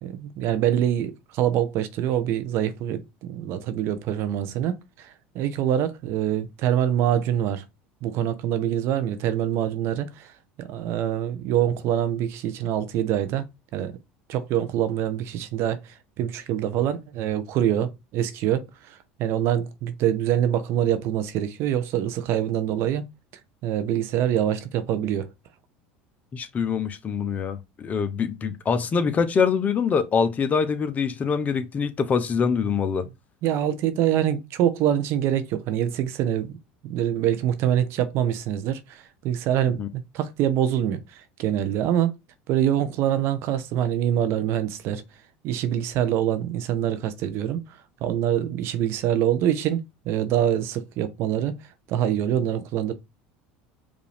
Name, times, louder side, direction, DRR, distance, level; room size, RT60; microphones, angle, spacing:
voice 1, 0.0-7.6 8.0-10.3 10.6-13.5 13.7-14.0 14.3-23.0 23.6-25.3 33.4-36.6 36.8-42.1 42.5-45.0 45.4-47.6 48.0-51.5 51.9-52.9, right 10 dB, 60° right, 0.7 m, -25 dB
voice 2, 26.3-33.0 39.8-39.9, left 6 dB, 30° left, 0.7 m, -24 dB
5.0 x 2.6 x 3.4 m
supercardioid pair, 105°, 5 cm